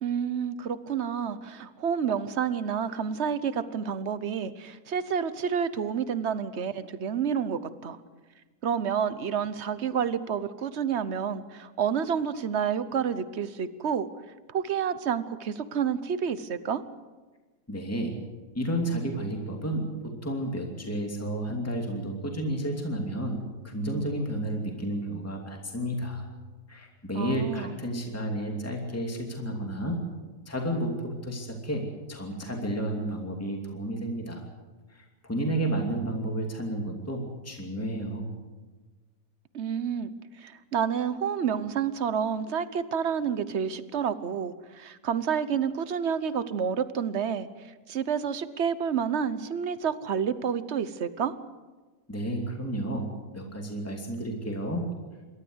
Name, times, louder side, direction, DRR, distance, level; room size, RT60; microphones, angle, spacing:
voice 1, 0.0-8.0 8.6-14.1 14.5-16.8 27.1-27.7 39.5-40.1 40.4-47.5 47.9-51.4, right 7 dB, 50° right, 14 dB, 1.0 m, -29 dB
voice 2, 17.7-18.1 18.5-23.4 23.6-26.2 26.7-30.0 30.5-31.8 32.1-34.4 34.9-38.3 52.1-54.8, right 1 dB, 10° left, 1 dB, 2.7 m, -31 dB
28.0 x 13.0 x 8.0 m, 1.3 s
omnidirectional pair, 1.7 m